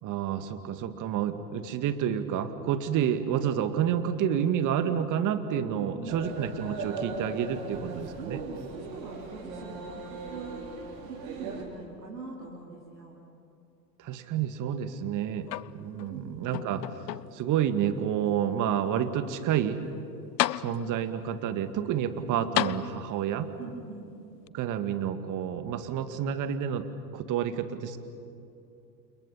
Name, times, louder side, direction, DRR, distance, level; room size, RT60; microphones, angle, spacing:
voice 1, 0.0-8.4 14.0-15.5 15.7-16.9 17.3-19.8 20.6-23.5 24.5-26.8 27.1-28.0, right 9 dB, 40° right, 9 dB, 2.2 m, -29 dB
voice 2, 5.7-6.2 8.2-10.6 11.0-13.2 16.1-16.3 22.0-22.2 23.6-24.1, right 3 dB, 90° right, -5 dB, 4.2 m, -43 dB
sound 1, 6.1-11.6, right 3 dB, 55° right, 6.3 m, -39 dB
sound 2, 15.5-16.1 16.5-17.5 18.2-18.3 19.9-20.0 20.4-21.2 22.5-23.4 24.5-24.6, left 14 dB, 80° left, 0.6 m, -32 dB
29.5 x 28.5 x 5.8 m, 2.7 s
hypercardioid pair, 95°, 49 cm